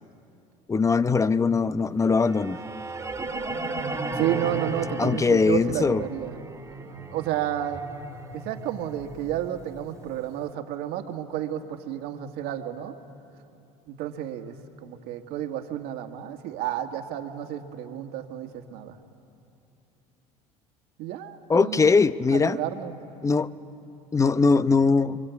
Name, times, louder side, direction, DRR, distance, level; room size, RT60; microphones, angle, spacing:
voice 1, 0.7-2.6 5.0-6.1 21.5-22.6 23.2-23.5 24.1-25.2, left 4 dB, 20° left, 14 dB, 0.8 m, -21 dB
sound 1, 2.2-10.2, right 2 dB, 15° right, 2.1 m, -35 dB
voice 2, 4.1-6.4 7.1-7.9 8.3-13.0 13.9-14.6 14.8-19.0 21.0-21.9 22.3-23.0, right 11 dB, 70° right, 4 dB, 2.0 m, -31 dB
26.0 x 24.0 x 8.4 m, 2.8 s
supercardioid pair, 85°, 17 cm